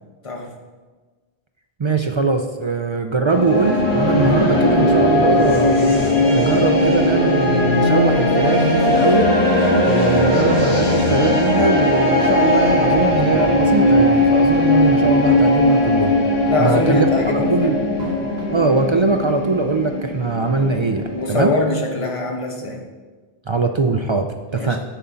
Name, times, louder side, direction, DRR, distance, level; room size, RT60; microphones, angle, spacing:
voice 1, 1.8-5.8 6.3-9.3 9.9-16.1 16.6-17.1 17.3-17.8 18.5-21.5 23.5-24.8, right 4 dB, 50° right, 5 dB, 0.3 m, -21 dB
sound 1, 3.3-21.5, left 1 dB, 85° left, 2.7 m, -18 dB
sound 2, 10.4-16.5 16.8-17.7 18.0-18.8, right 1 dB, 75° right, 1.9 m, -35 dB
voice 2, 16.5-17.8 21.1-22.8 24.6-24.8, left 2 dB, 30° left, 1 dB, 1.1 m, -22 dB
9.9 x 6.8 x 3.8 m, 1.3 s
omnidirectional pair, 1.1 m